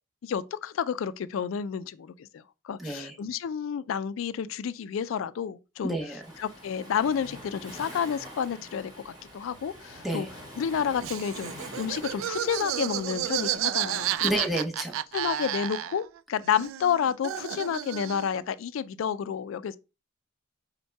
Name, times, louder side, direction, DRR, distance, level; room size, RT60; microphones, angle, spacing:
voice 1, 0.2-10.3 10.6-14.4 15.1-19.8, left 7 dB, 85° left, 0.3 m, -30 dB
voice 2, 2.8-3.1 5.8-6.2 10.0-10.3 14.2-15.0, right 1 dB, ahead, 0.8 m, -30 dB
Waves surf, 6.2-14.3, equal, 20° right, 1.5 m, -46 dB
Laughter, 11.0-16.2 16.4-18.4, right 11 dB, 85° right, 0.3 m, -32 dB
5.4 x 2.2 x 4.5 m
head